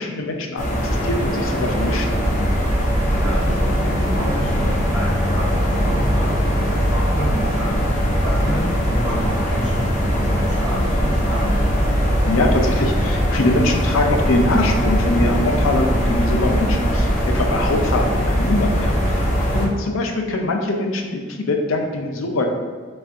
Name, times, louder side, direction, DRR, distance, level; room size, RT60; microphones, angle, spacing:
voice 1, 0.0-2.2 12.3-19.2 19.5-22.6, left 2 dB, 75° left, 3 dB, 0.5 m, -23 dB
sound 1, 0.6-19.7, equal, 40° left, 0.6 m, -22 dB
sound 2, 2.1-19.2, equal, 75° right, 0.7 m, -25 dB
voice 2, 2.8-11.6 19.4-19.7, equal, 5° right, -13 dB, 1.2 m, -30 dB
4.2 x 3.4 x 2.5 m, 1.5 s
head